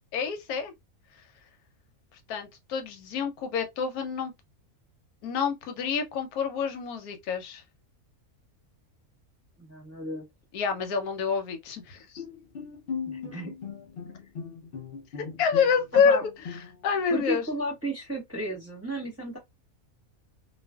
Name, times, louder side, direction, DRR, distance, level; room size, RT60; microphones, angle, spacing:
voice 1, 0.1-0.7 2.3-4.3 5.2-7.6 10.5-12.0 15.4-16.3 16.8-17.4, left 6 dB, 90° left, 1.1 m, -27 dB
voice 2, 9.6-10.2 13.1-13.5 15.9-16.2 17.1-19.4, right 1 dB, 10° right, 0.9 m, -33 dB
Bowed string instrument, 12.2-17.0, left 6 dB, 60° left, 0.6 m, -39 dB
2.4 x 2.4 x 2.2 m
omnidirectional pair, 1.5 m